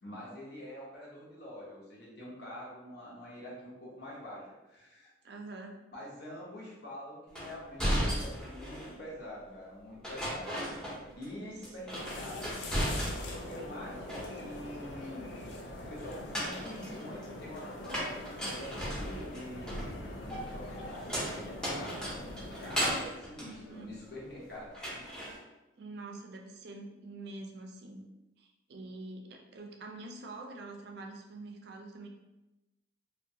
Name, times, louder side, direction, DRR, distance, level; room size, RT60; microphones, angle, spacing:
voice 1, 0.0-5.1 5.9-10.5 11.2-15.3 15.9-21.2 21.4-22.3 22.6-25.0, left 1 dB, 55° left, -5 dB, 0.8 m, -46 dB
voice 2, 5.2-5.8 23.4-23.9 25.8-28.0 28.4-32.1, right 2 dB, 55° right, 2 dB, 0.4 m, -45 dB
sound 1, 7.3-9.0 10.0-11.3 11.6-13.5 13.8-14.7 16.1-24.4 24.7-25.4, equal, 5° left, 0.5 m, -36 dB
sound 2, 11.9-23.0, left 1 dB, 70° left, 0.4 m, -44 dB
2.7 x 2.2 x 2.6 m, 1.0 s
head